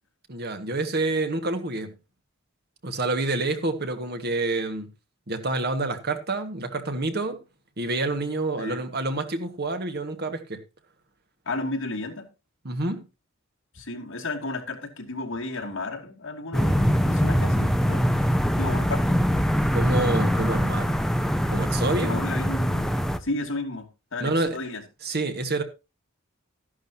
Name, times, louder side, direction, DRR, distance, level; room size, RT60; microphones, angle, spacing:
voice 1, 0.3-1.9 2.8-4.9 5.3-7.4 7.8-10.6 12.7-13.0 19.7-21.0 21.5-22.2 24.2-24.6 25.0-25.6, right 2 dB, 50° right, 1.8 m, -28 dB
voice 2, 11.5-12.3 13.7-18.1 18.6-19.2 22.0-22.9 23.2-24.8, left 2 dB, 65° left, 2.7 m, -33 dB
sound 1, 16.5-23.2, equal, ahead, 0.7 m, -23 dB
13.0 x 11.5 x 2.9 m
head